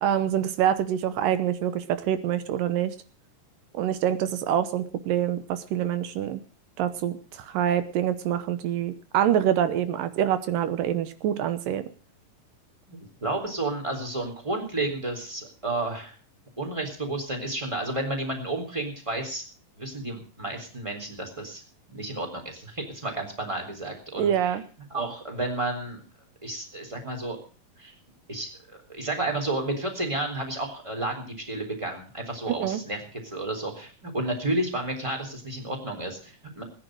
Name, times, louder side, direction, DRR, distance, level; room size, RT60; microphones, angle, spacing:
voice 1, 0.0-3.0 3.7-6.4 6.8-11.9 24.2-24.6 32.5-32.8, right 10 dB, 80° right, 12 dB, 2.5 m, -26 dB
voice 2, 12.9-16.2 16.6-19.4 19.8-21.6 21.9-24.6 24.9-26.0 26.4-27.4 27.8-27.9 28.3-28.5 28.9-36.6, right 2 dB, 10° right, 3 dB, 3.5 m, -31 dB
18.0 x 10.0 x 6.3 m, 0.38 s
omnidirectional pair, 3.9 m